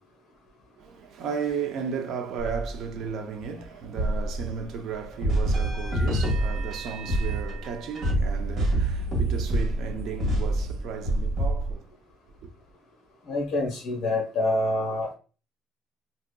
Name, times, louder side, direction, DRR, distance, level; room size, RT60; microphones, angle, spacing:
voice 1, 0.8-11.9, right 6 dB, 55° right, 0.6 m, -34 dB
sound 1, 2.4-3.1 4.0-4.9 5.2-11.7, right 1 dB, 40° right, 1.6 m, -27 dB
voice 2, 13.3-15.1, left 1 dB, 50° left, 0.9 m, -26 dB
3.9 x 2.8 x 2.2 m
cardioid pair, 140°, 0 cm